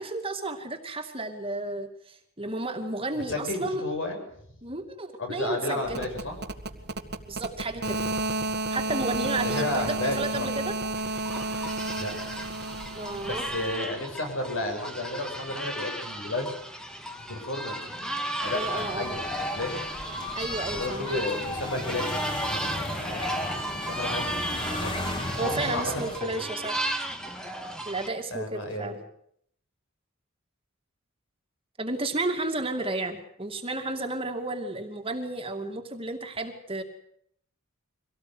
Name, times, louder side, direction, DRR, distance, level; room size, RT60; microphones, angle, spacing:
voice 1, 0.0-3.9 4.6-6.1 7.3-8.0 8.7-10.7 12.9-13.5 18.5-19.1 20.4-21.2 25.4-26.8 27.8-29.0 31.8-36.8, right 2 dB, 25° right, 4 dB, 2.5 m, -32 dB
voice 2, 3.1-4.2 5.2-6.3 7.7-8.1 9.4-10.5 12.0-12.1 13.2-16.5 17.2-19.8 20.7-24.9 25.4-26.0 26.4-26.5 28.3-29.0, left 2 dB, 60° left, 4 dB, 7.5 m, -33 dB
sound 1, 5.9-13.8, right 2 dB, 50° right, 1.8 m, -32 dB
sound 2, 11.0-28.1, right 1 dB, 5° left, 2.0 m, -35 dB
sound 3, 18.4-26.2, left 1 dB, 25° left, 3.5 m, -35 dB
25.0 x 18.0 x 8.0 m, 0.69 s
head